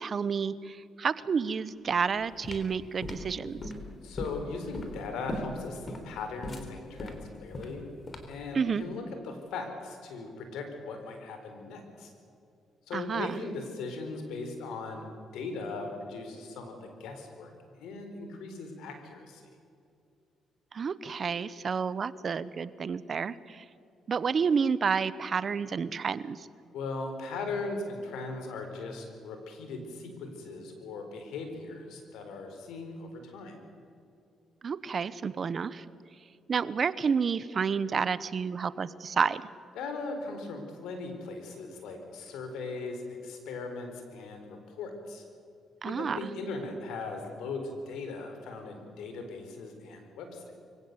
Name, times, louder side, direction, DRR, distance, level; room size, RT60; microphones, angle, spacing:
voice 1, 0.0-3.6 8.5-8.8 12.9-13.4 20.7-23.6 24.1-26.5 34.6-35.8 36.5-39.4 45.8-46.3, right 6 dB, 45° right, 17 dB, 0.9 m, -30 dB
sound 1, 2.0-8.5, left 1 dB, 40° left, 3.6 m, -39 dB
voice 2, 4.0-7.9 8.3-12.1 12.9-15.1 15.3-17.5 17.8-19.4 26.7-33.5 39.8-45.2 45.8-50.6, left 3 dB, 85° left, 5 dB, 4.3 m, -39 dB
24.0 x 16.5 x 8.2 m, 2.6 s
cardioid pair, 90°, 0 cm